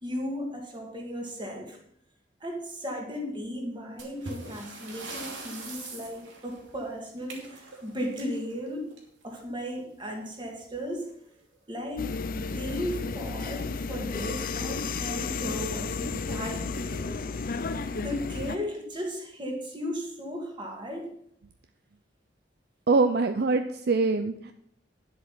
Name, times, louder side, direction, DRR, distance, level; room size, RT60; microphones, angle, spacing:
voice 1, 0.0-1.8 2.4-8.9 9.2-11.1 11.7-12.1 12.3-17.3 17.9-21.1, equal, 25° right, 1 dB, 2.3 m, -36 dB
sound 1, 4.0-9.4 10.6-10.8 11.1-11.2 11.8-11.9 12.6-12.9, right 2 dB, 80° right, 2.8 m, -43 dB
sound 2, 12.0-18.6, left 4 dB, 50° left, 0.6 m, -32 dB
voice 2, 22.9-24.5, right 3 dB, 55° right, 8 dB, 0.5 m, -24 dB
10.5 x 7.8 x 5.6 m, 0.71 s
head